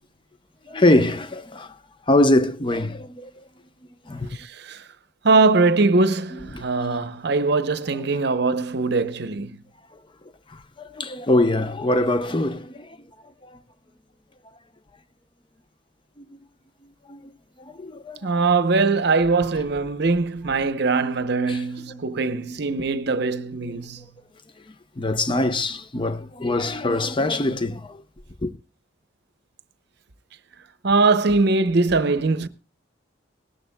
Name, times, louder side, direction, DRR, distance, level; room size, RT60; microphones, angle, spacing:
voice 1, 0.7-1.8 2.1-3.3 4.0-4.4 6.3-6.7 7.9-8.1 10.5-13.0 13.4-13.6 16.2-16.3 17.1-17.3 17.6-18.3 21.5-21.6 21.9-22.0 24.7-28.0 28.4-28.5, left 1 dB, 25° left, 0.7 m, -23 dB
voice 2, 5.2-9.6 18.2-24.0 30.8-32.5, right 3 dB, 60° right, 0.8 m, -21 dB
18.5 x 13.5 x 2.2 m
head